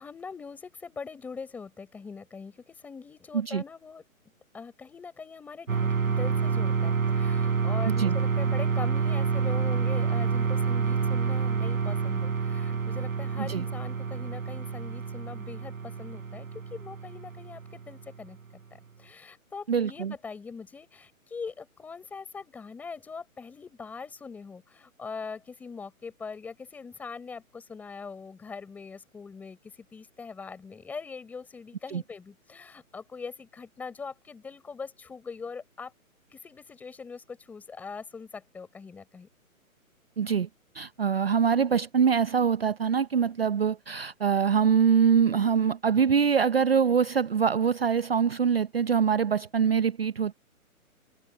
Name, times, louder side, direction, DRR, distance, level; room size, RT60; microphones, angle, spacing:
voice 1, 0.0-4.0 4.5-35.9 36.3-39.3, left 5 dB, 5° left, 4.0 m, -42 dB
sound 1, 5.7-18.2, right 6 dB, 70° right, 3.9 m, -28 dB
voice 2, 19.7-20.1 31.9-32.0 40.2-40.5 40.7-50.3, right 7 dB, 45° right, 0.7 m, -24 dB
hypercardioid pair, 175°, 43 cm